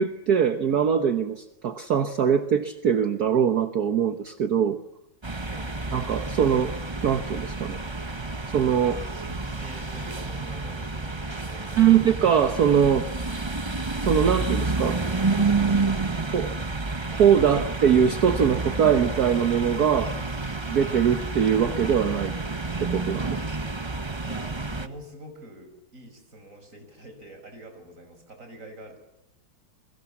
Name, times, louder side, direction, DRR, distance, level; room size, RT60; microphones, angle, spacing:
voice 1, 0.0-4.8 5.9-6.7 7.0-7.8 8.5-9.0 11.8-13.0 14.1-15.0 15.4-15.5 16.3-16.5 17.1-20.1 20.7-22.3 22.8-23.3, right 8 dB, 55° right, 8 dB, 1.5 m, -22 dB
sound 1, 5.2-24.9, right 3 dB, 20° right, 0.8 m, -29 dB
voice 2, 8.8-11.8 23.2-23.4 24.2-29.0, right 1 dB, 35° right, 5 dB, 6.1 m, -45 dB
29.5 x 23.0 x 7.2 m, 0.89 s
omnidirectional pair, 2.2 m